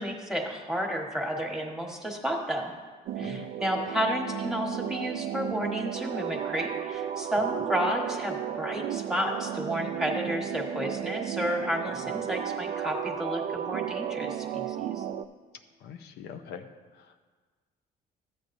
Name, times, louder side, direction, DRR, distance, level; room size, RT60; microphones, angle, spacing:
voice 1, 0.0-2.7 3.2-15.0, equal, 5° right, 0 dB, 1.4 m, -31 dB
sound 1, 3.1-15.2, right 10 dB, 65° right, 0.4 m, -34 dB
voice 2, 15.8-16.7 17.0-17.2, left 7 dB, 75° left, 6 dB, 0.6 m, -43 dB
13.0 x 8.3 x 2.6 m, 1.4 s
cardioid pair, 110°, 17 cm